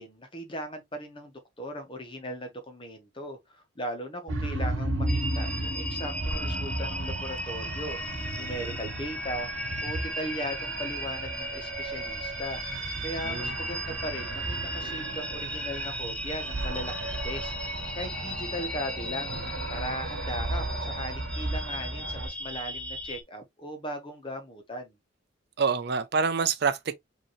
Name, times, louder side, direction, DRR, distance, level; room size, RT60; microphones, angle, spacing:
voice 1, 0.0-8.0 8.4-9.5 9.8-12.6 13.0-19.4 19.7-24.9, equal, 25° left, 1.1 m, -38 dB
sound 1, 4.3-22.3, right 2 dB, 85° right, 1.1 m, -34 dB
sound 2, 5.1-23.2, left 1 dB, 5° left, 0.5 m, -37 dB
voice 2, 25.6-26.9, right 5 dB, 55° right, 0.5 m, -26 dB
5.2 x 2.8 x 3.1 m
head